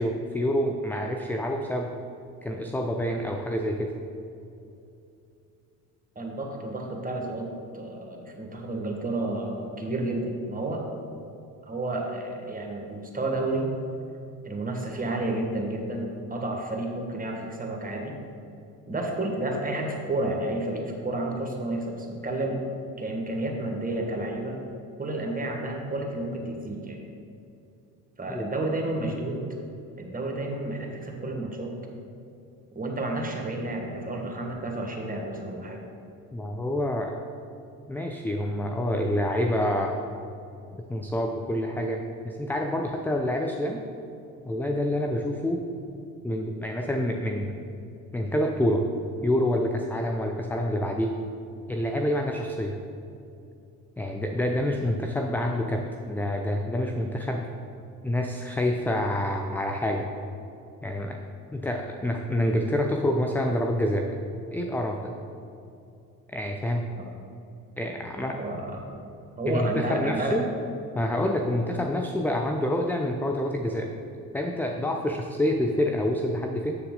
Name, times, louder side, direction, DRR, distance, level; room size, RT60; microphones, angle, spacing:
voice 1, 0.0-2.0 2.4-3.9 28.3-28.5 36.3-37.2 37.9-40.0 40.9-43.8 44.5-45.6 46.2-47.7 48.1-48.9 49.2-51.1 51.7-52.8 54.0-57.5 58.0-60.1 60.8-61.2 61.5-64.1 64.5-65.1 66.3-66.9 67.8-68.3 69.5-70.5 70.9-73.9 74.3-76.8, left 1 dB, 5° left, 3 dB, 0.4 m, -27 dB
voice 2, 6.1-7.5 7.7-10.8 11.7-13.7 14.4-18.2 18.9-22.6 23.0-24.6 25.0-27.0 28.2-29.4 30.0-31.7 32.7-35.8 67.0-67.1 68.2-69.0 69.4-70.4, right 2 dB, 20° right, 1 dB, 1.5 m, -31 dB
7.0 x 6.7 x 3.8 m, 2.7 s
hypercardioid pair, 55°, 43 cm